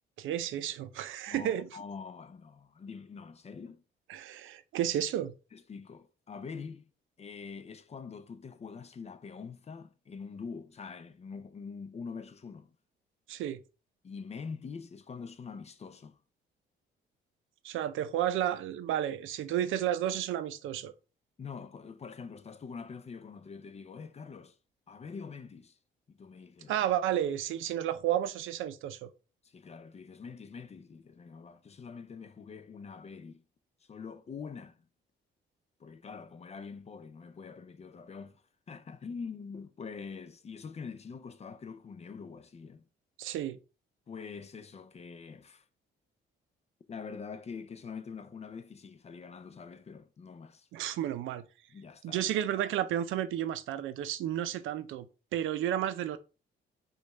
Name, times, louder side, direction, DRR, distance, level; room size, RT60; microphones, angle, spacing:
voice 1, 0.2-1.7 4.1-5.3 13.3-13.6 17.6-20.9 26.7-29.1 43.2-43.6 50.7-51.4 52.0-55.1 55.3-56.2, right 11 dB, 80° right, 0.5 m, -32 dB
voice 2, 1.3-3.8 5.5-6.9 7.2-12.7 14.0-16.2 21.4-24.6 24.9-25.8 26.1-26.7 29.4-33.4 33.9-34.8 35.8-42.8 44.1-45.7 46.9-50.7 51.7-52.3, left 5 dB, 35° left, 0.5 m, -44 dB
5.0 x 2.4 x 4.2 m
cardioid pair, 90°, 20 cm